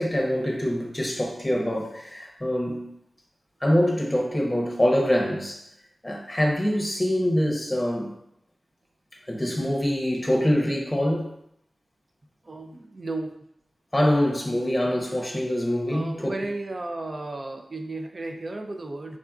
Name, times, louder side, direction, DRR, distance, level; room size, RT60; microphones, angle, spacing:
voice 1, 0.0-2.9 3.6-5.6 6.0-8.1 9.3-11.3 13.9-16.3, equal, 15° left, 0 dB, 0.7 m, -24 dB
voice 2, 12.4-13.3 15.9-19.2, right 2 dB, 50° right, 4 dB, 0.4 m, -34 dB
3.6 x 2.4 x 2.3 m, 0.74 s
cardioid pair, 50°, 0 cm